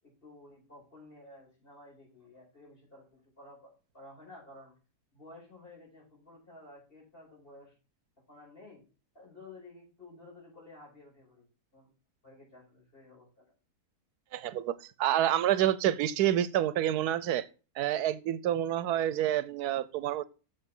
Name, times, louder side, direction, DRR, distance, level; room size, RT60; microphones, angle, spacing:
voice 1, 0.0-4.7 5.1-7.7 8.3-8.9 9.1-11.5 11.7-11.9 12.2-13.5, left 2 dB, 35° left, 5.3 m, -53 dB
voice 2, 14.3-17.5 17.8-20.3, right 11 dB, 85° right, 1.2 m, -28 dB
7.3 x 7.0 x 5.4 m
omnidirectional pair, 1.6 m